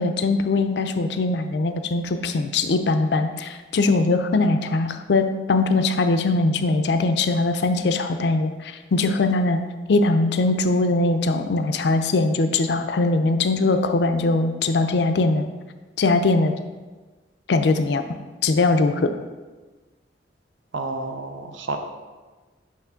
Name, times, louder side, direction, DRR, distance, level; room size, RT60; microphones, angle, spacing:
voice 1, 0.0-9.6 9.9-15.5 16.0-16.5 17.5-18.0 18.4-19.1, left 3 dB, 65° left, 8 dB, 0.4 m, -21 dB
voice 2, 20.7-21.8, right 3 dB, 85° right, 5 dB, 0.6 m, -30 dB
5.8 x 3.0 x 5.6 m, 1.3 s
head